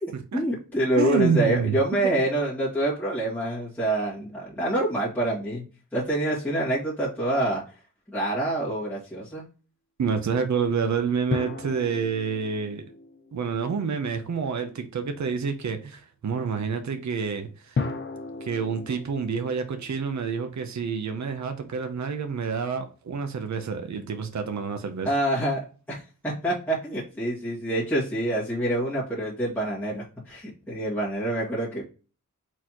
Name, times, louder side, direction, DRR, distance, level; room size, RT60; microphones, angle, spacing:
voice 1, 0.0-5.6 5.9-7.6 8.1-9.5 25.0-25.6 25.9-31.8, right 1 dB, 5° left, 2.1 m, -26 dB
voice 2, 1.0-1.8 2.0-2.1 10.0-12.8 13.3-17.8 18.4-25.1, right 5 dB, 60° right, 0.7 m, -28 dB
sound 1, 11.3-14.1 17.8-21.1, left 4 dB, 35° left, 0.6 m, -35 dB
4.4 x 4.1 x 2.9 m
wide cardioid pair, 130°, 33 cm